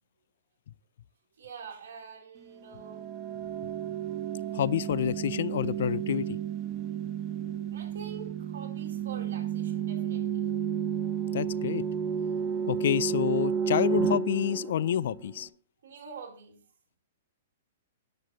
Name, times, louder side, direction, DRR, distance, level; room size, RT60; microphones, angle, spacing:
voice 1, 1.4-3.1 7.7-10.5 15.8-16.6, right 6 dB, 75° right, 3.9 m, -45 dB
sound 1, 2.7-15.4, right 8 dB, 35° right, 1.4 m, -32 dB
voice 2, 4.5-6.4 11.3-11.8 12.7-15.5, left 10 dB, 65° left, 0.4 m, -28 dB
10.5 x 7.7 x 4.0 m
hypercardioid pair, 120°, 0 cm